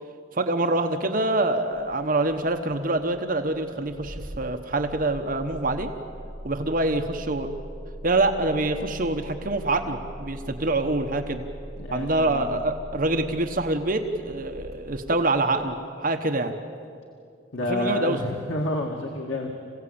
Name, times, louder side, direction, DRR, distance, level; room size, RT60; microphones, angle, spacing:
voice 1, 0.3-5.9 6.4-7.5 8.0-11.4 11.9-16.5 17.7-18.2, right 2 dB, 45° right, 6 dB, 1.1 m, -25 dB
Engine starting, 1.7-15.8, equal, 20° right, 7.3 m, -41 dB
voice 2, 11.8-12.5 17.5-19.5, left 1 dB, 90° left, 1 dB, 2.0 m, -29 dB
27.5 x 16.5 x 8.7 m, 2.4 s
head